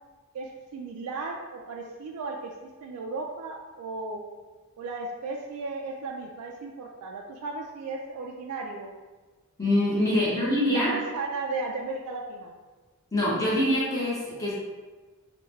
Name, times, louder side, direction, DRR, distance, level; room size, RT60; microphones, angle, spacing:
voice 1, 0.3-2.5 2.8-4.2 4.8-8.9 9.9-12.5, right 3 dB, 80° right, 0 dB, 0.3 m, -35 dB
voice 2, 9.6-10.9 13.1-14.5, left 1 dB, 15° left, -9 dB, 1.0 m, -24 dB
3.5 x 2.2 x 3.1 m, 1.3 s
head